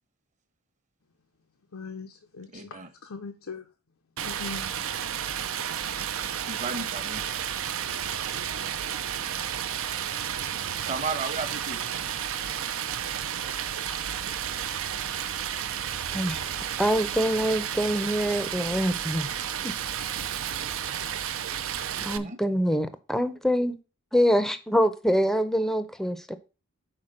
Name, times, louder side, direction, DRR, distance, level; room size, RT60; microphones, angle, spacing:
voice 1, 1.7-2.8 3.0-3.7 4.3-4.7, left 4 dB, 85° left, 0.7 m, -40 dB
voice 2, 2.5-2.9 6.4-7.4 10.9-11.8 22.1-22.4, right 4 dB, 35° right, 1.1 m, -34 dB
Stream, 4.2-22.2, right 9 dB, 65° right, 0.6 m, -32 dB
voice 3, 16.1-16.4 16.8-19.3 19.6-19.7 22.0-23.8 24.1-26.4, equal, ahead, 0.6 m, -25 dB
5.8 x 4.6 x 6.4 m
head